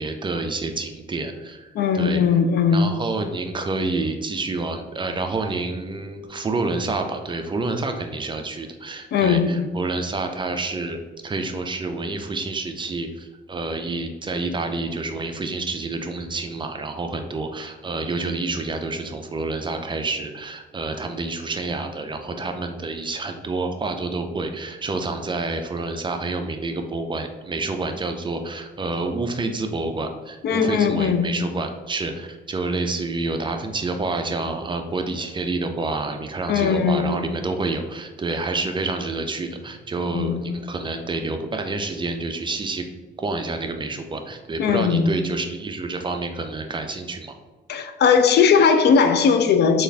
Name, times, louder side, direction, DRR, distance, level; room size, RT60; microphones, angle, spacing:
voice 1, 0.0-1.7 1.9-2.2 2.7-11.0 11.2-42.8 43.2-47.3, right 3 dB, 25° right, 5 dB, 0.4 m, -28 dB
voice 2, 1.7-2.9 9.1-9.7 30.4-31.3 36.5-37.2 40.1-40.4 44.6-45.2 47.7-49.8, left 6 dB, 55° left, 8 dB, 0.4 m, -19 dB
3.4 x 2.5 x 3.2 m, 1.2 s
cardioid pair, 90°, 20 cm